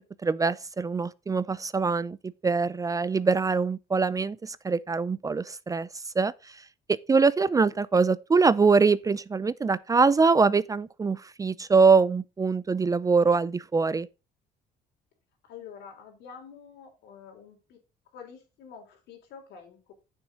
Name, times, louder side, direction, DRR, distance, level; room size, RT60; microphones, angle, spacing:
voice 1, 0.0-5.9 6.2-6.6 7.1-14.1, right 4 dB, 20° right, 0.4 m, -23 dB
voice 2, 15.4-17.8 18.1-19.9, left 7 dB, 85° left, 3.8 m, -47 dB
9.1 x 7.2 x 3.7 m
cardioid pair, 110°, 17 cm